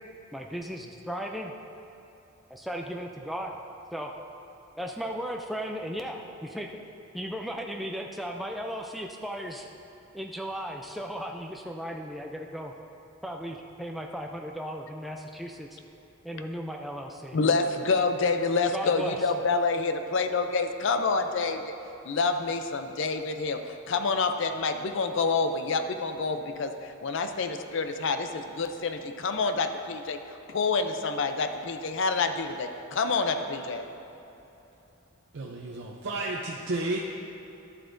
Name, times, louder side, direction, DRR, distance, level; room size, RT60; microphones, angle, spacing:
voice 1, 0.3-1.5 2.5-3.6 3.9-4.2 4.8-6.7 7.1-9.7 10.1-12.7 13.2-15.8 16.2-17.4 18.7-19.2, equal, ahead, 1 dB, 0.3 m, -36 dB
voice 2, 17.3-21.7 22.0-33.9, left 4 dB, 60° left, 7 dB, 0.5 m, -28 dB
voice 3, 35.3-37.0, right 2 dB, 60° right, -2 dB, 0.6 m, -32 dB
11.5 x 7.9 x 2.6 m, 3.0 s
head